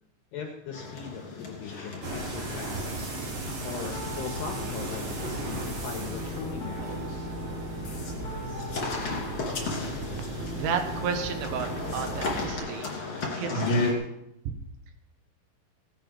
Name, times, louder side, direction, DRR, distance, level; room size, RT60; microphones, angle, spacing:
voice 1, 0.3-3.1 3.6-7.3, left 6 dB, 70° left, 2 dB, 2.9 m, -39 dB
sound 1, 0.7-13.9, left 2 dB, 30° left, 3.0 m, -35 dB
sound 2, 2.0-12.5, right 2 dB, 55° right, 5.3 m, -37 dB
Piano, 3.9-12.6, equal, 85° left, 0.9 m, -39 dB
voice 2, 10.3-13.9, right 6 dB, 75° right, 7 dB, 3.6 m, -33 dB
17.0 x 10.5 x 5.1 m, 0.82 s
omnidirectional pair, 5.9 m